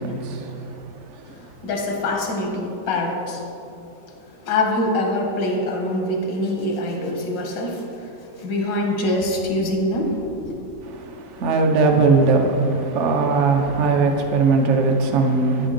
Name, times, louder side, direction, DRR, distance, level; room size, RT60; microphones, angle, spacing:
voice 1, 0.0-1.5 10.8-15.7, right 4 dB, 60° right, 0.8 m, -20 dB
voice 2, 1.3-3.4 4.1-4.2 4.4-10.5, left 1 dB, 85° left, 1.7 m, -24 dB
8.8 x 5.2 x 3.8 m
omnidirectional pair, 1.9 m